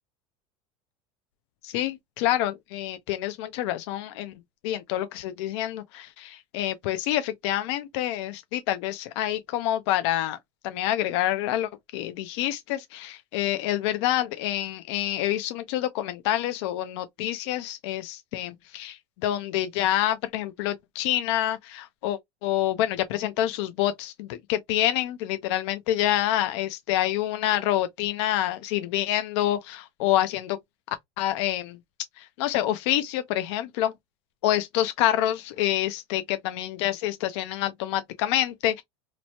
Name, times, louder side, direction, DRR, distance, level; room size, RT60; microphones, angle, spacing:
voice 1, 1.6-4.3 4.6-10.4 10.6-30.6 31.2-31.8 32.2-33.9 34.4-38.8, left 13 dB, 75° left, 0.4 m, -27 dB
2.9 x 2.0 x 2.7 m
supercardioid pair, 105°, 15 cm